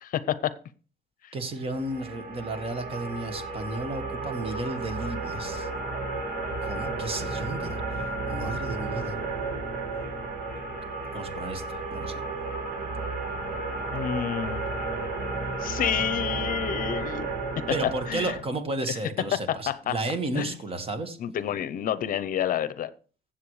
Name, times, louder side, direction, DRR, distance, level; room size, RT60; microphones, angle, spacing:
voice 1, 0.0-0.5 1.2-1.3 13.9-14.6 15.6-17.3 17.8-18.4 19.3-20.6 21.2-22.9, left 10 dB, 55° left, 15 dB, 0.7 m, -29 dB
voice 2, 1.3-5.7 6.6-7.8 8.3-9.2 11.1-12.2 17.7-21.2, right 2 dB, 35° right, 8 dB, 1.7 m, -33 dB
sound 1, 1.6-18.4, right 3 dB, 60° right, 2.9 m, -33 dB
15.5 x 7.6 x 3.2 m, 0.39 s
cardioid pair, 110°, 17 cm